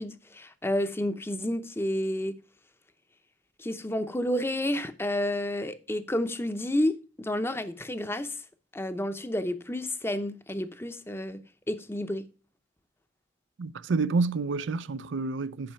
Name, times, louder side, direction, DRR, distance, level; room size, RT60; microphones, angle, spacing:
voice 1, 0.0-2.3 3.6-8.4 8.7-11.4 11.7-12.2, left 1 dB, 15° left, 0.7 m, -30 dB
voice 2, 13.6-15.7, right 4 dB, 85° right, 0.5 m, -29 dB
10.5 x 5.4 x 5.6 m
head